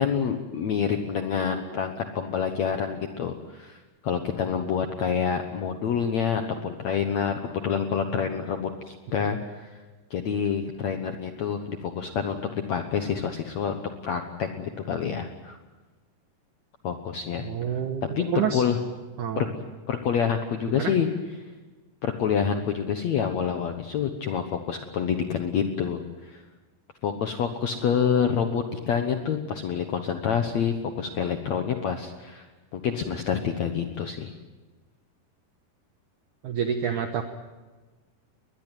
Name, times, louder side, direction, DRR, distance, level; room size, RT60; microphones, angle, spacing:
voice 1, 0.0-9.8 10.1-12.4 12.7-13.8 14.0-15.6 16.8-17.8 18.2-18.8 19.4-19.5 19.9-21.1 22.0-26.4 27.0-32.5 32.7-34.3, left 7 dB, 65° left, 6 dB, 1.8 m, -27 dB
voice 2, 17.4-18.6 19.2-19.5 20.7-20.9 36.4-37.2, right 8 dB, 65° right, 6 dB, 2.1 m, -28 dB
22.0 x 20.5 x 9.1 m, 1.3 s
omnidirectional pair, 4.7 m